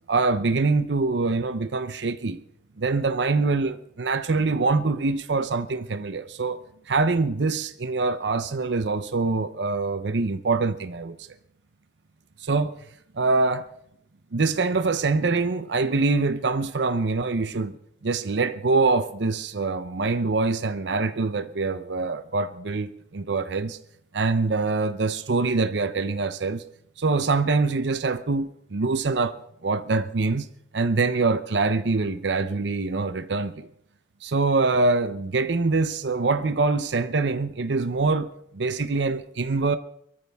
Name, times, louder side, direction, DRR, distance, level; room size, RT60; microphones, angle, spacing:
voice 1, 0.1-2.4 2.8-11.2 12.4-12.7 13.1-13.7 14.3-17.8 18.0-23.8 24.1-26.6 27.0-29.4 29.6-30.5 30.7-33.7 34.2-39.8, right 3 dB, 65° right, 0.7 m, -24 dB
23.0 x 14.0 x 3.5 m
head